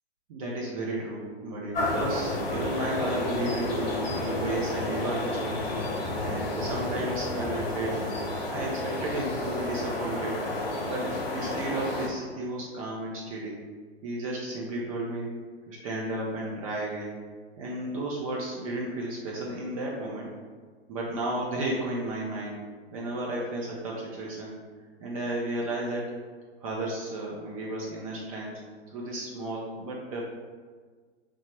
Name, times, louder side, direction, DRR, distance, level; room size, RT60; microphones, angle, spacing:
voice 1, 0.3-5.7 5.9-8.1 8.5-10.4 10.8-13.6 14.0-15.3 15.7-17.2 17.6-20.3 20.9-22.6 22.9-24.6 25.0-26.2 26.6-28.6 28.9-30.2, right 1 dB, 35° right, -4 dB, 0.5 m, -33 dB
sound 1, 1.7-12.1, left 2 dB, 60° left, 0.9 m, -31 dB
3.0 x 2.0 x 3.2 m, 1.5 s
hypercardioid pair, 125°, 33 cm